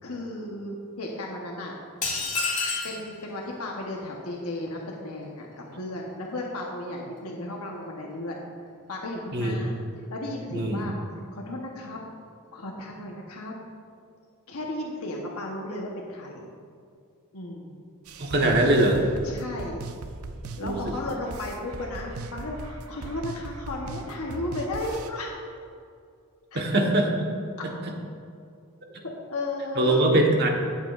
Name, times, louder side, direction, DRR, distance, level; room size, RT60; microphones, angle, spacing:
voice 1, 0.0-1.7 2.8-5.5 5.7-8.5 8.9-9.7 10.1-10.9 11.3-12.0 12.5-13.5 14.5-16.5 17.3-17.7 19.2-19.8 20.6-25.3 26.5-26.6 29.0-30.0, left 1 dB, 85° left, -1 dB, 1.1 m, -34 dB
sound 1, 2.0-3.0, left 3 dB, 35° left, 2.2 m, -28 dB
voice 2, 10.5-10.9 18.2-19.0 20.6-20.8 26.5-27.3 27.6-27.7 29.8-30.5, right 1 dB, 50° right, 1 dB, 1.3 m, -22 dB
sound 2, 18.1-25.1, right 3 dB, 75° right, 0.6 m, -38 dB
18.0 x 7.3 x 2.5 m, 2.3 s
head